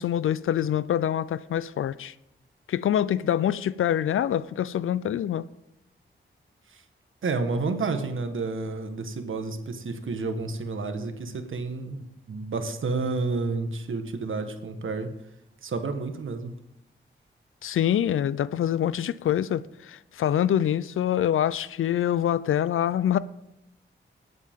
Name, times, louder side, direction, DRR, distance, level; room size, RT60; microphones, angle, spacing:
voice 1, 0.0-2.1 2.7-5.4 17.6-23.2, left 10 dB, 90° left, 0.5 m, -25 dB
voice 2, 7.2-15.1 15.6-16.5, right 3 dB, 75° right, 1.5 m, -30 dB
21.0 x 8.0 x 3.7 m
cardioid pair, 60°, 20 cm